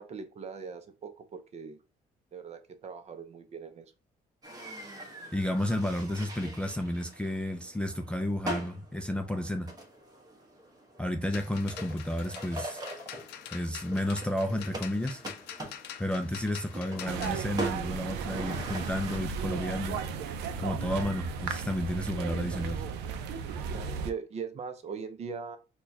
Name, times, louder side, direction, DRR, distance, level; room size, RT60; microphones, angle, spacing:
voice 1, 0.0-1.8 2.3-3.9 23.7-25.6, right 5 dB, 40° right, 0.6 m, -40 dB
sound 1, 4.4-19.2, right 1 dB, 20° right, 1.1 m, -42 dB
voice 2, 5.3-9.7 11.0-12.8 13.5-15.2 16.0-20.0 20.6-22.8, left 1 dB, 5° left, 0.4 m, -32 dB
sound 2, 11.2-17.4, left 10 dB, 80° left, 0.5 m, -45 dB
sound 3, 17.1-24.1, right 6 dB, 90° right, 0.5 m, -35 dB
4.3 x 2.3 x 2.7 m
cardioid pair, 110°, 17 cm